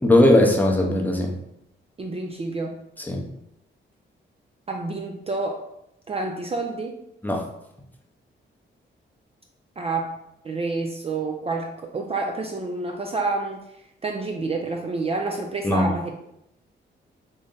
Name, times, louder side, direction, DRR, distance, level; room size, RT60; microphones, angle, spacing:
voice 1, 0.0-1.3 3.1-3.2 7.2-7.4 15.6-15.9, left 1 dB, 10° left, 0 dB, 0.6 m, -18 dB
voice 2, 2.0-2.8 4.7-5.6 6.1-7.0 9.8-10.1 10.4-13.6 14.0-16.1, right 3 dB, 30° right, 2 dB, 0.4 m, -28 dB
3.8 x 2.1 x 3.7 m, 0.81 s
cardioid pair, 90°, 20 cm